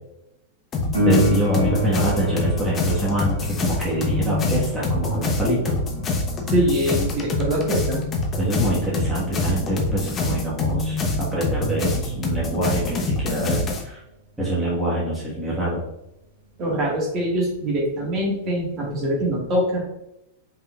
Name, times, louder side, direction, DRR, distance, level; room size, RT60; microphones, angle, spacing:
sound 1, 0.7-13.8, left 2 dB, 30° left, 0.8 m, -25 dB
Piano, 0.9-11.3 18.9-19.0, left 1 dB, 80° right, 1.4 m, -30 dB
voice 1, 1.0-5.8 8.4-14.0 14.4-15.8, right 1 dB, 10° right, -7 dB, 1.4 m, -25 dB
voice 2, 6.5-8.0 16.6-19.8, equal, 35° right, -3 dB, 1.7 m, -23 dB
5.4 x 3.7 x 2.4 m, 0.86 s
figure-of-eight pair, 95°, 0 cm